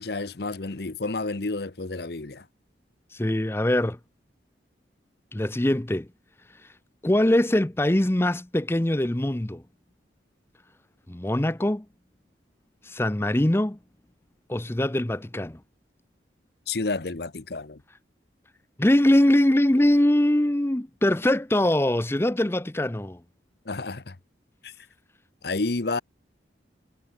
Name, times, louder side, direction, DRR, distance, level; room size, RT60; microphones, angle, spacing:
voice 1, 0.0-2.4 16.7-17.8 23.7-24.2 24.6-24.7 25.4-26.0, left 3 dB, 60° left, 0.9 m, -30 dB
voice 2, 3.1-4.0 5.3-6.1 7.0-9.6 11.1-11.8 12.8-13.8 14.5-15.6 18.8-23.2, left 1 dB, 15° left, 0.6 m, -22 dB
head